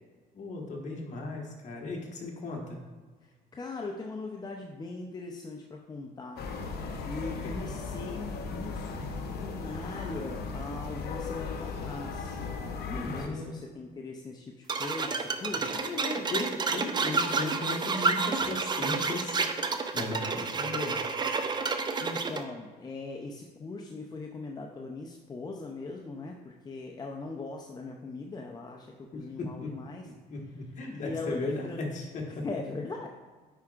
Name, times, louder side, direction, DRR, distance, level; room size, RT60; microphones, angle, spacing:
voice 1, 0.3-2.8 7.4-7.6 12.8-13.5 15.5-21.0 29.1-29.7 30.3-32.4, left 2 dB, 45° left, 0 dB, 1.4 m, -36 dB
voice 2, 3.2-6.5 7.0-12.4 12.9-15.8 22.0-30.1 30.9-31.9 32.3-33.1, left 3 dB, 25° left, 0 dB, 0.5 m, -40 dB
sound 1, 6.4-13.3, left 4 dB, 70° left, 0.9 m, -37 dB
sound 2, 14.7-22.4, right 4 dB, 25° right, 0.5 m, -30 dB
8.9 x 4.8 x 2.4 m, 1.4 s
cardioid pair, 110°, 17 cm